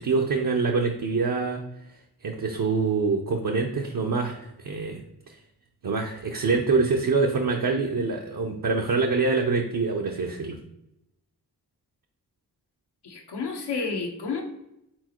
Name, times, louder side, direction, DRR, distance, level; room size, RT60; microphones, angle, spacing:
voice 1, 0.0-1.6 2.2-5.4 5.8-10.6, right 4 dB, 55° right, 1 dB, 0.7 m, -25 dB
voice 2, 13.0-14.4, left 4 dB, 80° left, 2 dB, 1.0 m, -30 dB
4.5 x 4.0 x 3.0 m, 0.84 s
cardioid pair, 40°, 39 cm